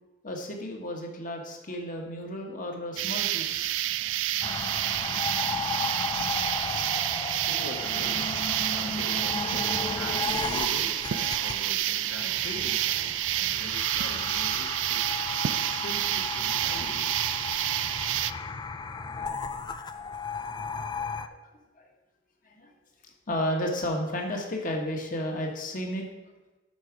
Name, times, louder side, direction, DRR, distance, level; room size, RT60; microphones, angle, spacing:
voice 1, 0.2-3.7 4.0-4.1 5.4-5.6 17.7-18.4 19.1-19.8 20.3-20.5 20.7-21.3 21.8-21.9 22.4-22.7 23.3-26.1, left 1 dB, 45° left, 2 dB, 1.4 m, -34 dB
sound 1, 3.0-18.3, right 14 dB, 70° right, 0.3 m, -29 dB
sound 2, 4.4-21.3, left 4 dB, 20° left, 0.3 m, -35 dB
voice 2, 7.5-17.3, left 1 dB, 75° left, 4 dB, 1.2 m, -43 dB
11.0 x 4.7 x 5.0 m, 1.1 s
head